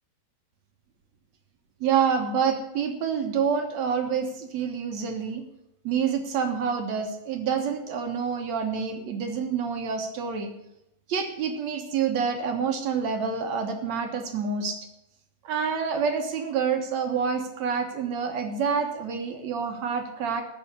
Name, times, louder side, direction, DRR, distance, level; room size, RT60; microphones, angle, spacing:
voice 1, 1.8-5.4 5.8-10.5 11.1-14.8 15.4-20.4, right 6 dB, 60° right, 5 dB, 2.3 m, -27 dB
13.5 x 5.9 x 9.6 m, 0.86 s
omnidirectional pair, 4.2 m